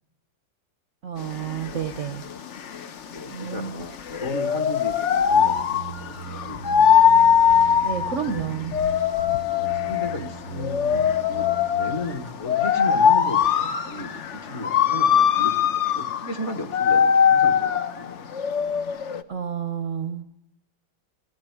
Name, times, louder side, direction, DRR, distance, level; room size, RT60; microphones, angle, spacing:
voice 1, 1.0-2.2 3.3-3.8 7.8-8.8 19.3-20.2, right 8 dB, 50° right, 9 dB, 0.9 m, -30 dB
sound 1, 1.2-19.2, left 8 dB, 60° left, 0.8 m, -21 dB
voice 2, 3.1-7.0 8.0-8.7 9.5-11.5 11.8-18.3, left 2 dB, 35° left, 7 dB, 1.8 m, -35 dB
sound 2, 5.3-11.9, right 7 dB, 90° left, 4.2 m, -39 dB
18.0 x 15.0 x 9.5 m, 0.84 s
omnidirectional pair, 2.3 m